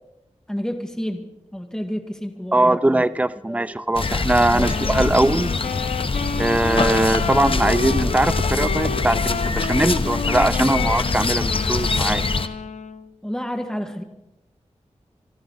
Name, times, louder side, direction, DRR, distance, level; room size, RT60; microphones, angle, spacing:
voice 1, 0.5-2.8 3.5-3.6 4.5-4.7 13.2-14.0, equal, 5° left, 5 dB, 1.8 m, -30 dB
voice 2, 2.5-5.5 6.4-12.2, right 1 dB, 10° right, 13 dB, 0.6 m, -21 dB
sound 1, 4.0-12.5, left 3 dB, 50° left, 0.9 m, -24 dB
Wind instrument woodwind instrument, 4.6-13.1, left 6 dB, 80° left, 0.7 m, -31 dB
25.5 x 13.5 x 4.0 m, 0.90 s
wide cardioid pair, 90°, 12 cm